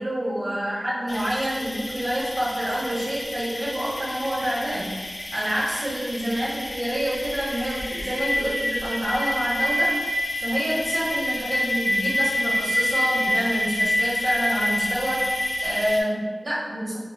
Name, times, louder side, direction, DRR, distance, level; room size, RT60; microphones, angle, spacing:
voice 1, 0.0-4.9 5.3-9.9 10.4-15.3 15.6-17.0, equal, 60° right, -6 dB, 0.9 m, -27 dB
sound 1, 1.1-16.0, left 1 dB, 80° left, 0.4 m, -28 dB
4.0 x 2.0 x 2.3 m, 1.4 s
wide cardioid pair, 65°, 0 cm